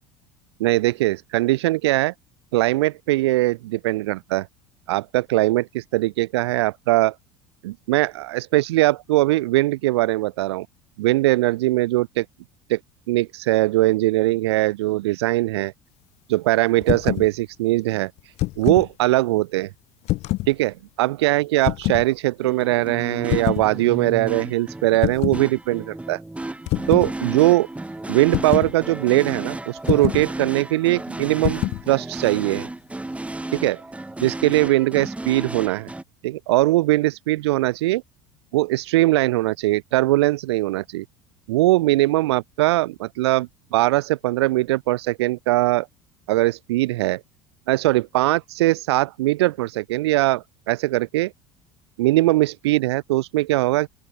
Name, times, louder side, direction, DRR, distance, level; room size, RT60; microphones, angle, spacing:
voice 1, 0.6-2.1 2.5-4.5 4.9-7.2 7.6-10.7 11.0-12.3 12.7-12.8 13.1-15.7 16.3-18.1 18.6-19.7 20.5-26.2 26.9-27.7 28.1-32.7 33.5-33.8 34.2-35.9 36.2-38.0 38.5-41.0 41.5-45.9 46.3-47.2 47.7-51.3 52.0-53.9, right 18 dB, 70° right, 0.5 m, -21 dB
sound 1, 16.8-17.3 18.2-18.9 20.0-20.5 21.6-22.0 23.3-23.7 25.0-25.4 26.7-27.1 28.3-28.7 29.9-30.3 31.4-31.8, left 19 dB, 50° left, 0.5 m, -25 dB
sound 2, 22.4-36.0, right 2 dB, 10° right, 5.4 m, -33 dB
open air
figure-of-eight pair, 70°, 15 cm